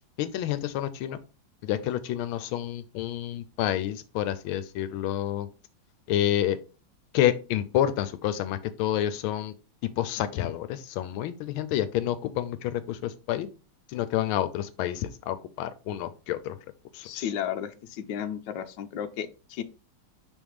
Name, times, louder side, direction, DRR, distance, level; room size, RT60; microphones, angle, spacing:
voice 1, 0.2-1.2 1.6-5.5 6.1-6.6 7.1-9.5 9.8-13.5 13.9-16.6 16.9-17.3, left 12 dB, 90° left, 13 dB, 1.4 m, -29 dB
voice 2, 17.0-19.6, left 9 dB, 70° left, 8 dB, 1.3 m, -33 dB
5.5 x 3.6 x 4.8 m, 0.33 s
omnidirectional pair, 2.2 m